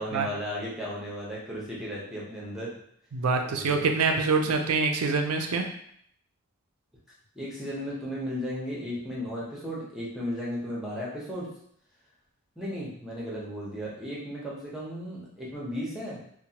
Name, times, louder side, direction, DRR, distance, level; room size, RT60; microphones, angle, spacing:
voice 1, 0.0-2.7 3.4-3.8 4.4-4.6 7.3-11.5 12.6-16.2, equal, ahead, -6 dB, 0.7 m, -35 dB
voice 2, 3.1-5.7, right 4 dB, 85° right, 4 dB, 0.4 m, -25 dB
2.9 x 2.1 x 2.8 m, 0.67 s
head